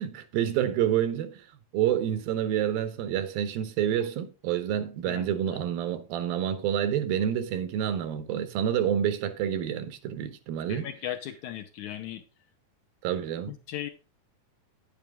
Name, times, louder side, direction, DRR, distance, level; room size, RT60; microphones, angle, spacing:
voice 1, 0.0-1.5 1.7-10.9 13.0-13.6, right 10 dB, 90° right, 2.8 m, -28 dB
voice 2, 10.7-12.2 13.5-13.9, left 11 dB, 75° left, 1.9 m, -37 dB
10.0 x 9.0 x 3.5 m
omnidirectional pair, 4.1 m